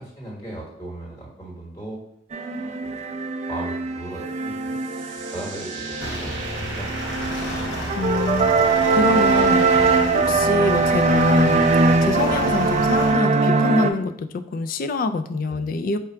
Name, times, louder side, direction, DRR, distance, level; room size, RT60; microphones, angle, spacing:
voice 1, 0.0-2.0 2.5-3.0 3.5-4.8 5.3-7.4 15.5-15.7, right 1 dB, 20° left, -3 dB, 1.0 m, -37 dB
sound 1, 2.3-13.9, right 3 dB, 35° right, 0.3 m, -21 dB
sound 2, 4.3-11.4, right 3 dB, 70° right, 0.7 m, -40 dB
Jeep Ext moving, 6.0-13.1, equal, 70° left, 0.9 m, -32 dB
voice 2, 8.0-16.0, left 3 dB, 50° left, 10 dB, 0.3 m, -26 dB
4.8 x 2.2 x 4.3 m, 0.73 s
head